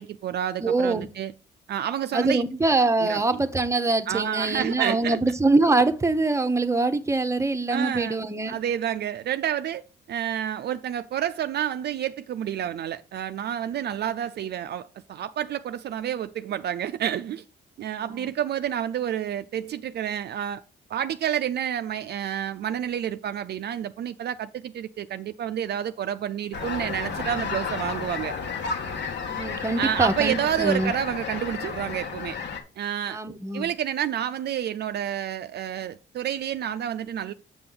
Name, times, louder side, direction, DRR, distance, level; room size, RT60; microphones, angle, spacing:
voice 1, 0.0-1.3 1.7-2.4 3.0-3.2 4.1-5.2 7.7-8.2 8.5-9.8 10.1-17.4 17.8-20.6 20.9-28.3 29.8-32.4 32.8-33.2 33.5-37.3, right 10 dB, 55° right, 0.4 m, -29 dB
voice 2, 0.6-1.1 2.1-8.6 18.1-18.3 29.3-30.9 33.1-33.7, right 2 dB, 15° right, 0.8 m, -24 dB
sound 1, 26.5-32.6, left 5 dB, 65° left, 1.6 m, -32 dB
7.6 x 5.9 x 3.9 m
cardioid pair, 90°, 20 cm